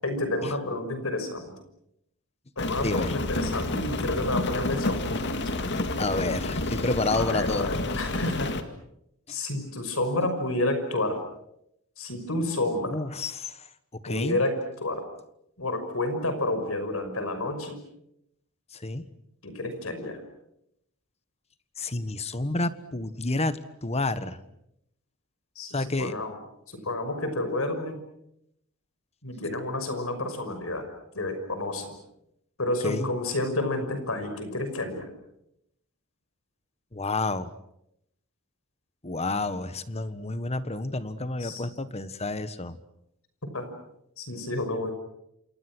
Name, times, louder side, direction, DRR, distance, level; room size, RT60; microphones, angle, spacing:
voice 1, 0.0-1.5 2.6-5.4 7.2-8.5 9.3-11.2 12.0-13.0 14.1-15.0 15.6-17.8 19.4-20.2 25.6-26.4 26.7-28.0 29.2-30.8 31.1-32.0 32.6-35.1 41.4-41.6 43.5-43.6 44.2-44.9, left 2 dB, 70° left, 8 dB, 5.9 m, -30 dB
Rain, 2.6-8.6, left 2 dB, 55° left, 2.2 m, -29 dB
voice 2, 2.8-3.1 6.0-8.0 12.9-13.5 13.9-14.4 18.8-19.1 21.8-24.4 25.7-26.1 32.8-33.1 36.9-37.5 39.0-42.8, left 2 dB, 30° left, 13 dB, 1.4 m, -30 dB
28.5 x 28.0 x 6.3 m, 0.78 s
head